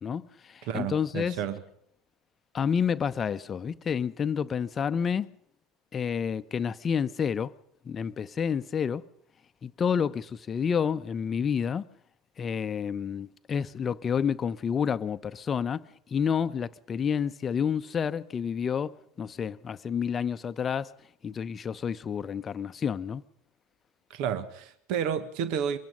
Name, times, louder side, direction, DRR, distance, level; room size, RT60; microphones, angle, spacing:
voice 1, 0.0-1.4 2.5-5.3 5.9-7.5 7.8-9.1 9.6-11.9 12.4-20.9 21.2-23.2, left 7 dB, 30° left, 0.9 m, -29 dB
voice 2, 0.6-1.6 24.1-25.8, right 8 dB, 55° right, 1.5 m, -31 dB
24.5 x 23.5 x 5.4 m
figure-of-eight pair, 70°, 0 cm